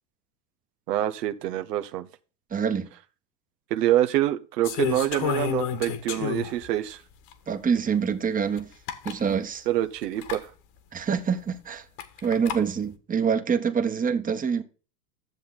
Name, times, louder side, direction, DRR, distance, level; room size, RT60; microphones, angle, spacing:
voice 1, 0.9-2.1 3.7-7.0 9.7-10.5, right 13 dB, 75° right, 0.9 m, -26 dB
voice 2, 2.5-2.9 7.5-8.7 9.0-9.7 10.9-11.8 12.2-14.6, right 6 dB, 15° right, 1.0 m, -26 dB
sound 1, 4.6-6.7 7.3-7.4 8.6-8.7 8.9-9.2 10.2-10.4 12.0-12.6, left 9 dB, 55° left, 1.6 m, -30 dB
10.5 x 7.1 x 4.0 m
hypercardioid pair, 95°, 48 cm